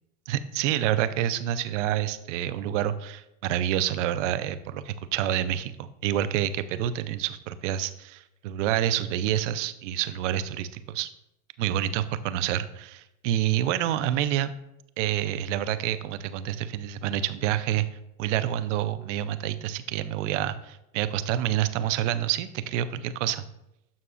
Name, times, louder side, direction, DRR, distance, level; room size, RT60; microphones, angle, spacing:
voice 1, 0.3-11.1 11.6-14.6 15.0-17.9 18.2-23.4, right 11 dB, 75° right, 13 dB, 0.6 m, -28 dB
11.0 x 5.9 x 2.5 m, 0.86 s
supercardioid pair, 105°, 37 cm